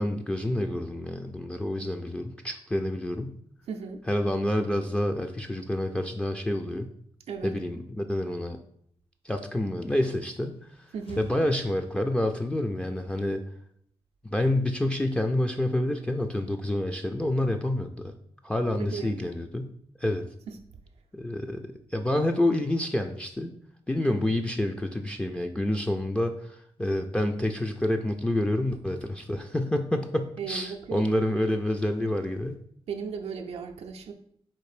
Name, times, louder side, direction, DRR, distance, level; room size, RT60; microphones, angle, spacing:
voice 1, 0.0-3.4 4.1-6.9 7.4-8.6 9.2-10.6 11.2-13.4 14.2-18.1 18.4-19.7 20.0-20.2 21.1-21.6 21.9-23.5 23.9-32.6, left 1 dB, 10° left, 5 dB, 0.4 m, -28 dB
voice 2, 3.7-4.0 7.3-7.6 10.9-11.3 18.8-19.2 20.5-20.6 30.4-31.1 32.9-34.1, right 6 dB, 85° right, 3 dB, 0.4 m, -36 dB
sound 1, 10.4-12.5, left 3 dB, 60° left, 1.0 m, -50 dB
4.2 x 2.5 x 4.8 m, 0.66 s
cardioid pair, 90°, 10 cm